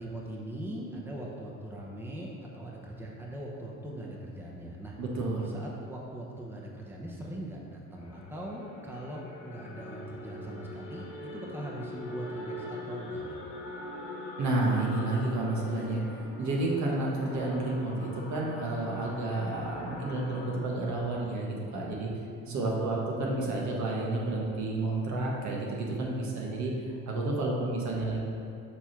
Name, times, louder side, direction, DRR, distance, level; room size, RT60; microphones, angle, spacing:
voice 1, 0.0-4.9 5.4-13.4 22.4-22.8, right 1 dB, 5° right, -3 dB, 1.0 m, -41 dB
voice 2, 5.0-5.5 14.4-22.1 22.5-26.7 27.1-28.2, right 2 dB, 60° right, -3 dB, 1.5 m, -30 dB
sound 1, 8.0-20.6, left 1 dB, 75° left, 1.3 m, -43 dB
6.9 x 3.4 x 5.9 m, 2.5 s
supercardioid pair, 85°, 32 cm